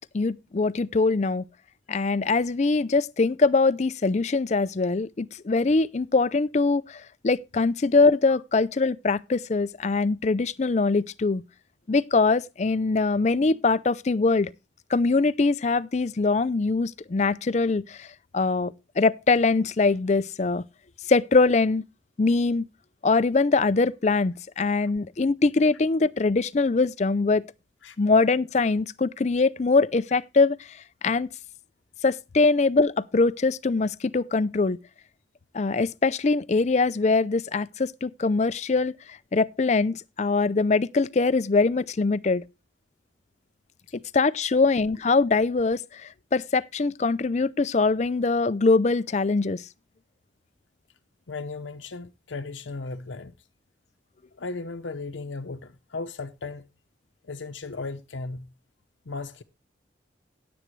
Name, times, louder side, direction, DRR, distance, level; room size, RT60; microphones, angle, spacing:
voice 1, 0.1-1.4 1.9-11.4 11.9-14.5 14.9-18.1 18.3-20.6 21.1-21.8 22.2-22.6 23.0-27.4 28.0-31.3 32.0-34.8 35.5-42.4 43.9-49.6, left 3 dB, 40° left, 0.4 m, -23 dB
voice 2, 51.3-53.3 54.4-56.6 57.2-58.5 59.1-59.4, left 3 dB, 90° left, 0.8 m, -36 dB
16.0 x 7.9 x 3.2 m
head